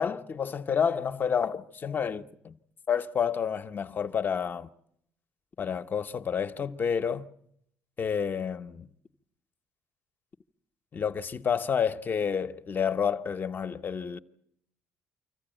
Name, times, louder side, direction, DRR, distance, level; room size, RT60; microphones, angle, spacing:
voice 1, 0.0-2.6 2.9-4.7 5.6-7.3 8.0-8.9 10.9-14.2, left 7 dB, 35° left, 0.9 m, -29 dB
25.5 x 14.5 x 9.0 m
cardioid pair, 100°, 6 cm